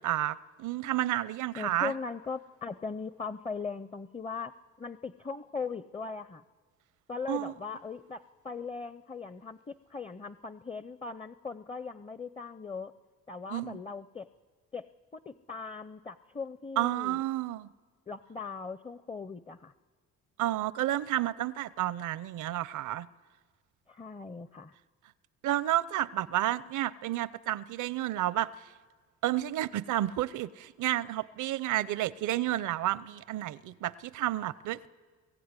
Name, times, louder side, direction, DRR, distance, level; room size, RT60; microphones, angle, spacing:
voice 1, 0.0-1.9 7.3-7.5 13.5-13.8 16.8-17.7 20.4-23.1 25.4-28.5 29.2-34.9, right 14 dB, 80° right, 0.7 m, -31 dB
voice 2, 1.6-4.5 4.8-6.4 7.1-12.9 13.3-14.3 14.7-14.8 15.1-17.3 18.1-19.7 23.9-24.7, left 5 dB, 20° left, 0.6 m, -39 dB
23.0 x 15.0 x 9.7 m
cardioid pair, 90°, 30 cm